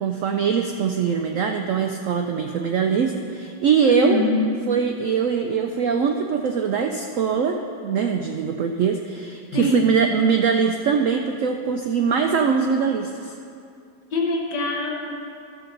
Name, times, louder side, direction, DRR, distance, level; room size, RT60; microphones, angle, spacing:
voice 1, 0.0-4.2 4.7-13.3, right 6 dB, 80° right, 4 dB, 0.7 m, -22 dB
voice 2, 3.8-4.4 9.5-9.9 14.1-15.1, left 1 dB, 75° left, 0 dB, 1.8 m, -23 dB
13.0 x 6.9 x 3.9 m, 2.4 s
omnidirectional pair, 1.9 m